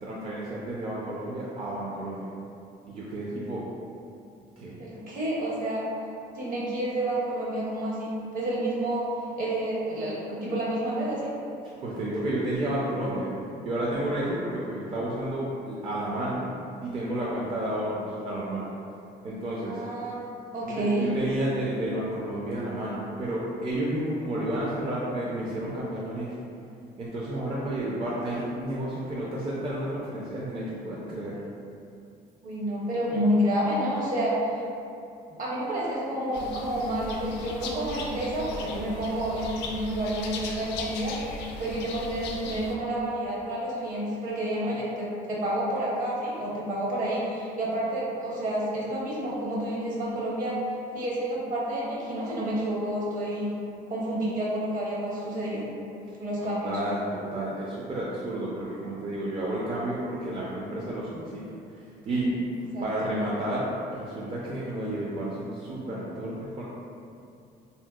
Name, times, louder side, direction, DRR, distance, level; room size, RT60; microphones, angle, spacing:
voice 1, 0.0-2.3 2.9-3.6 4.6-4.8 11.8-13.3 13.6-16.5 16.8-18.7 19.2-19.8 20.7-26.3 27.0-31.4 56.4-61.4 61.7-62.4 62.8-66.6, right 1 dB, 30° right, -6 dB, 0.4 m, -31 dB
voice 2, 4.8-5.8 6.3-9.1 9.4-11.3 19.6-20.2 20.5-21.1 32.4-34.6 35.3-50.6 50.9-53.5 53.9-55.7 56.2-56.7 62.7-63.1, right 1 dB, 55° right, -6 dB, 0.9 m, -29 dB
sound 1, 36.3-42.7, left 3 dB, 85° left, 0.4 m, -38 dB
3.2 x 2.7 x 2.3 m, 2.6 s
cardioid pair, 110°, 17 cm